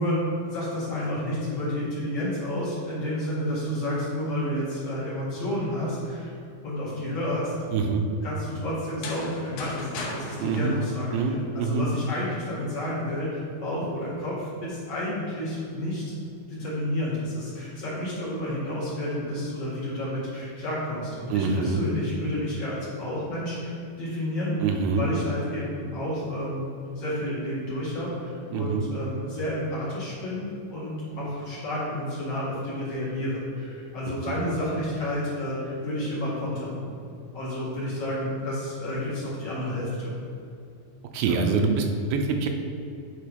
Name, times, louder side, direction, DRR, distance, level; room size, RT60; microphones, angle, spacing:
voice 1, 0.0-6.3 6.6-7.5 8.2-16.0 16.5-26.7 27.0-36.8 37.3-40.1 41.2-41.4, left 1 dB, 50° left, -8 dB, 2.4 m, -30 dB
voice 2, 7.7-8.0 10.4-10.8 11.1-11.9 21.3-21.8 24.6-25.1 28.5-28.8 34.1-34.3 41.1-42.5, right 4 dB, 85° right, 4 dB, 2.5 m, -25 dB
sound 1, 8.8-11.7, left 3 dB, 70° left, 2.4 m, -38 dB
8.4 x 4.4 x 5.1 m, 2.5 s
omnidirectional pair, 4.4 m